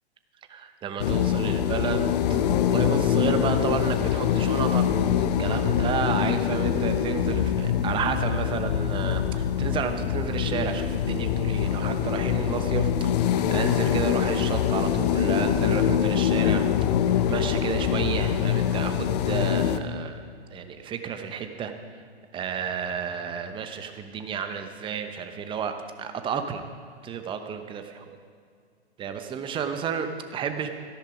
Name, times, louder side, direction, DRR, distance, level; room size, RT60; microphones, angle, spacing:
voice 1, 0.5-16.7 17.1-20.2 20.5-21.7 22.3-25.7 26.0-26.6 27.0-27.8 29.0-30.7, right 7 dB, 15° right, 7 dB, 1.0 m, -31 dB
sound 1, 1.0-19.8, left 9 dB, 40° left, 0.9 m, -24 dB
17.0 x 14.5 x 5.1 m, 2.2 s
figure-of-eight pair, 120°, 32 cm